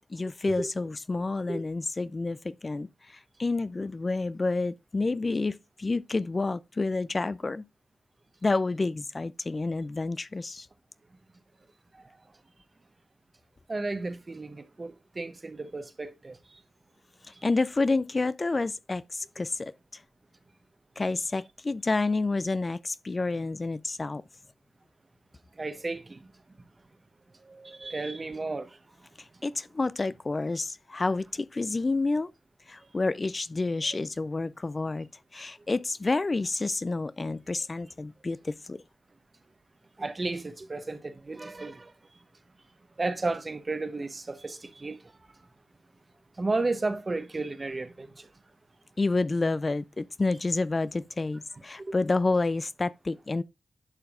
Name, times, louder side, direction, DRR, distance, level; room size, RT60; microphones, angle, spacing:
voice 1, 0.0-7.6 8.4-10.7 17.4-20.0 21.0-24.2 29.2-32.3 32.7-38.8 49.0-53.4, left 3 dB, 40° left, 0.4 m, -29 dB
voice 2, 13.7-16.4 25.6-26.2 27.5-28.7 40.0-41.9 43.0-45.0 46.4-48.1, right 3 dB, 40° right, 0.9 m, -33 dB
10.5 x 5.8 x 2.4 m
cardioid pair, 50°, 0 cm